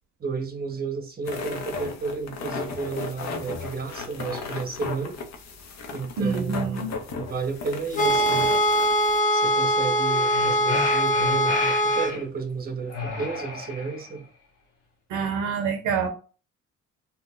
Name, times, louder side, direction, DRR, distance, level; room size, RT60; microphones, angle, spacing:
voice 1, 0.2-5.2 5.9-8.5 9.3-14.3, right 5 dB, 30° right, 0.8 m, -32 dB
sound 1, 1.2-9.2, left 4 dB, 60° left, 0.7 m, -35 dB
voice 2, 6.2-6.9 15.1-16.1, right 5 dB, 85° right, 0.6 m, -26 dB
sound 2, 7.9-12.2, equal, 25° left, 0.6 m, -22 dB
sound 3, 10.1-12.2 12.9-14.1, left 4 dB, 85° left, 1.6 m, -32 dB
2.8 x 2.1 x 3.6 m
cardioid pair, 90°, 30 cm